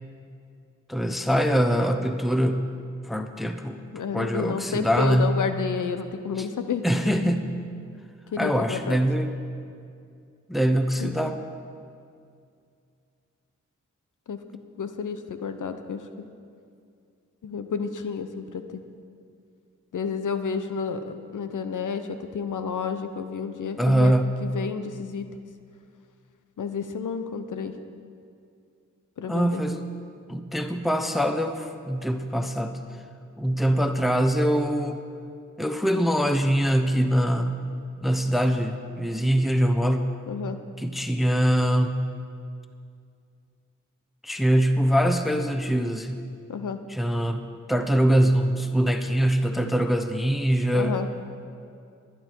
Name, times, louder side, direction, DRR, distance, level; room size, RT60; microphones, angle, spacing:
voice 1, 0.9-2.7 3.0-3.8 4.1-5.3 6.4-6.5 6.8-7.5 8.4-9.3 10.5-11.4 23.8-24.3 29.2-30.0 30.3-32.8 33.4-35.0 35.6-37.7 38.0-40.1 40.8-42.0 44.2-46.2 46.9-51.0, equal, ahead, 7 dB, 0.8 m, -23 dB
voice 2, 3.9-6.8 8.3-9.0 11.0-11.1 14.3-14.4 14.8-16.0 17.4-18.8 19.9-24.1 24.4-25.3 26.6-27.7 29.2-29.6 40.3-40.6 46.5-46.8 50.7-51.1, left 6 dB, 75° left, 9 dB, 0.8 m, -30 dB
21.0 x 9.3 x 4.6 m, 2.4 s
cardioid pair, 40°, 31 cm